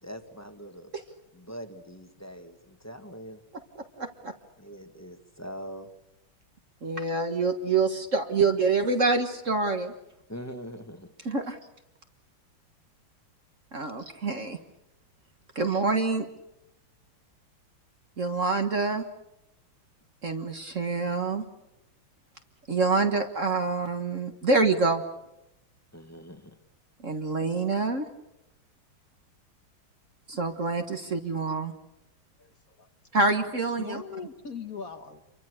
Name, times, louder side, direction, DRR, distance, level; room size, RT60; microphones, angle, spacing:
voice 1, 0.0-0.9 1.3-3.4 4.6-5.9 10.3-11.1 25.9-26.6, equal, 10° left, 6 dB, 1.6 m, -42 dB
voice 2, 3.5-4.3 6.8-9.9 11.2-11.6 13.7-14.6 15.5-16.3 18.2-19.0 20.2-21.4 22.7-25.0 27.0-28.1 30.3-31.7 33.1-34.0, right 3 dB, 40° right, 6 dB, 1.7 m, -26 dB
voice 3, 32.4-32.9 33.8-35.2, left 5 dB, 45° left, 7 dB, 1.7 m, -40 dB
28.5 x 24.0 x 6.6 m, 0.85 s
omnidirectional pair, 2.3 m